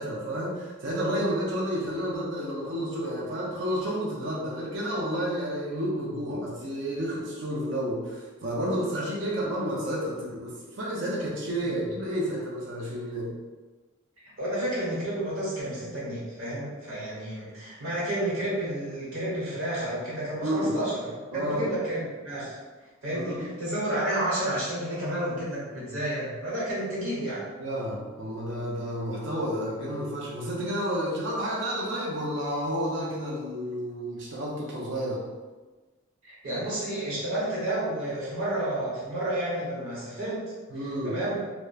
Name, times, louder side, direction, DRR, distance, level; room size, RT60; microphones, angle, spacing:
voice 1, 0.0-13.3 20.4-20.7 21.3-21.7 23.1-23.4 27.6-35.3 40.7-41.2, equal, 60° right, -4 dB, 0.5 m, -30 dB
voice 2, 14.4-22.6 23.0-27.4 36.2-40.4 41.0-41.4, right 1 dB, 80° right, -7 dB, 1.0 m, -31 dB
2.8 x 2.1 x 2.3 m, 1.3 s
head